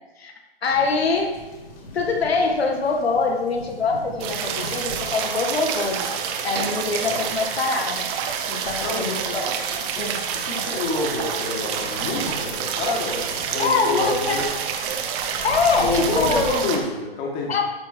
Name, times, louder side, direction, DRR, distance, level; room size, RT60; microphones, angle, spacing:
voice 1, 0.6-1.4 1.9-6.0 6.4-8.1 8.5-9.5 10.0-10.2 13.6-14.4 15.4-16.5 17.5-17.6, left 4 dB, 75° left, 2 dB, 2.0 m, -24 dB
sound 1, 0.7-16.5, left 2 dB, 60° left, 3.4 m, -41 dB
sound 2, 4.2-16.8, right 7 dB, 20° right, 0.8 m, -28 dB
sound 3, 6.6-8.5 8.8-8.9 9.4-9.6, right 6 dB, 70° right, 1.1 m, -37 dB
voice 2, 8.8-9.4 10.4-14.5 15.8-17.6, left 2 dB, 25° left, -1 dB, 2.2 m, -27 dB
13.0 x 6.0 x 4.6 m, 1.1 s
hypercardioid pair, 150°, 31 cm